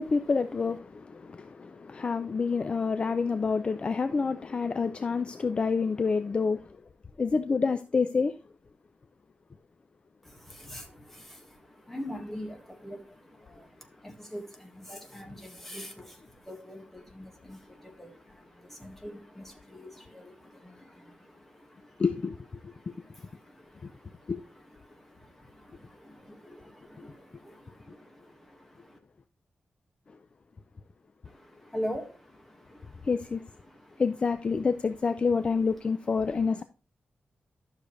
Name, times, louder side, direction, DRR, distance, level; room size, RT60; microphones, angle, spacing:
voice 1, 0.0-6.6 7.2-8.3 22.0-22.4 22.6-22.7 24.3-24.4 33.1-33.4 34.0-36.6, left 4 dB, 35° left, 0.5 m, -28 dB
voice 2, 10.2-22.1 22.6-29.0 31.3-34.1 34.5-36.6, equal, 5° left, 1.7 m, -44 dB
12.5 x 6.5 x 3.2 m
wide cardioid pair, 155°, 3 cm